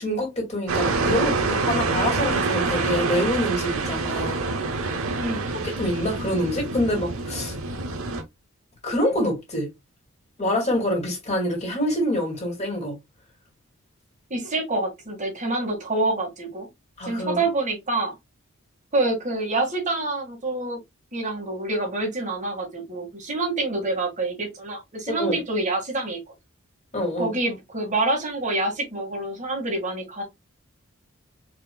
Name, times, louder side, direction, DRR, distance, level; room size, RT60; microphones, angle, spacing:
voice 1, 0.0-4.4 5.8-7.6 8.8-9.7 10.4-12.9 17.0-17.4 25.1-25.4 26.9-27.3, equal, 30° left, 2.1 m, -26 dB
sound 1, 0.7-8.2, right 3 dB, 80° right, 0.8 m, -26 dB
voice 2, 14.3-16.7 17.0-18.2 18.9-20.8 21.1-26.2 27.2-30.2, right 2 dB, 35° right, 1.7 m, -27 dB
4.9 x 3.0 x 2.2 m
head